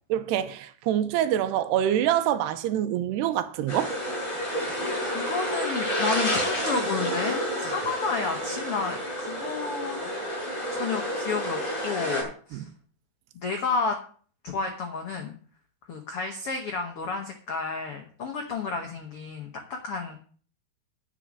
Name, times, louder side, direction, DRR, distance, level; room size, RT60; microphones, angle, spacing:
voice 1, 0.1-3.9 12.5-12.7, right 11 dB, 85° right, 3.0 m, -25 dB
sound 1, 3.7-12.2, equal, 20° left, 5.3 m, -30 dB
voice 2, 5.1-10.4 10.7-12.7 13.3-14.0 14.4-15.3 15.9-20.2, left 4 dB, 80° left, 1.2 m, -31 dB
10.0 x 6.7 x 7.5 m
omnidirectional pair, 4.7 m